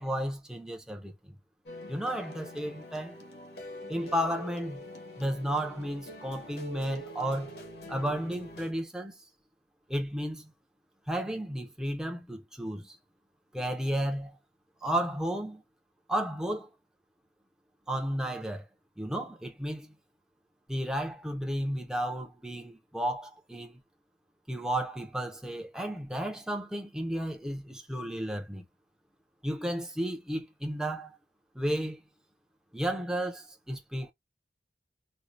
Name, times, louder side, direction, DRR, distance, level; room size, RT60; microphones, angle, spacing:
voice 1, 0.0-1.4 1.9-3.2 3.9-4.8 5.2-7.5 7.9-9.2 9.9-10.5 11.1-13.0 13.5-14.4 14.8-15.6 16.1-16.7 17.9-18.7 19.0-20.0 20.7-23.8 24.5-28.6 29.4-31.2 31.5-32.0 32.7-34.1, right 1 dB, 5° right, 0.7 m, -33 dB
sound 1, 1.7-8.7, equal, 60° left, 1.1 m, -45 dB
4.4 x 2.3 x 2.5 m
head